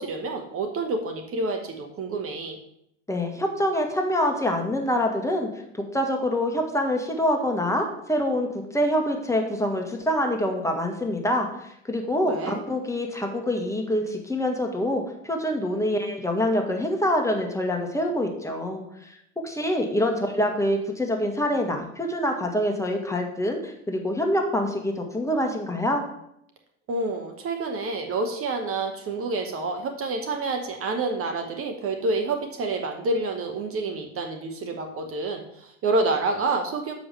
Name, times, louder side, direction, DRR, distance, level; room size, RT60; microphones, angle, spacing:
voice 1, 0.0-2.6 12.3-12.6 26.9-36.9, right 3 dB, 40° right, 5 dB, 1.1 m, -28 dB
voice 2, 3.1-5.5 5.9-19.2 19.4-26.0, left 1 dB, 10° left, 3 dB, 1.7 m, -25 dB
7.0 x 5.2 x 6.7 m, 0.74 s
figure-of-eight pair, 70°, 36 cm